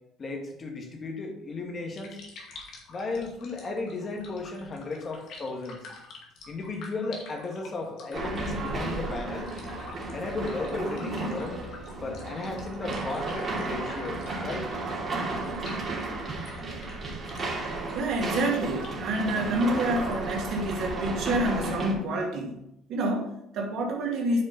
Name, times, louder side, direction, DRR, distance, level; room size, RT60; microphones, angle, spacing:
voice 1, 0.2-2.2 2.9-5.9 6.5-9.5 10.1-11.6 12.0-14.7, left 3 dB, 35° left, 2 dB, 2.1 m, -34 dB
sound 1, 1.7-20.9, left 3 dB, 65° left, 2.3 m, -49 dB
sound 2, 8.1-21.9, right 2 dB, 30° right, 2.8 m, -33 dB
voice 2, 17.9-22.6 22.9-24.4, right 1 dB, 60° right, 0 dB, 2.4 m, -28 dB
9.4 x 5.2 x 4.3 m, 0.80 s
supercardioid pair, 80°, 0 cm